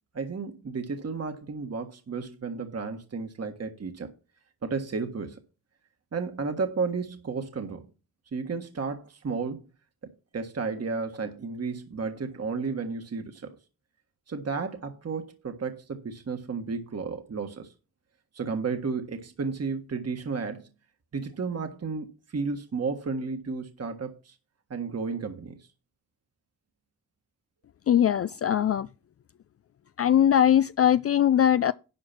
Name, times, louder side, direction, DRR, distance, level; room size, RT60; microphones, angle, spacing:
voice 1, 0.1-4.1 4.6-5.4 6.1-7.9 8.3-9.6 10.0-13.6 14.3-17.7 18.3-20.7 21.1-24.3 24.7-25.6, right 4 dB, 45° right, 1.6 m, -33 dB
voice 2, 27.9-28.9 30.0-31.7, left 10 dB, 40° left, 0.4 m, -21 dB
11.0 x 4.7 x 5.9 m
supercardioid pair, 50°, 35 cm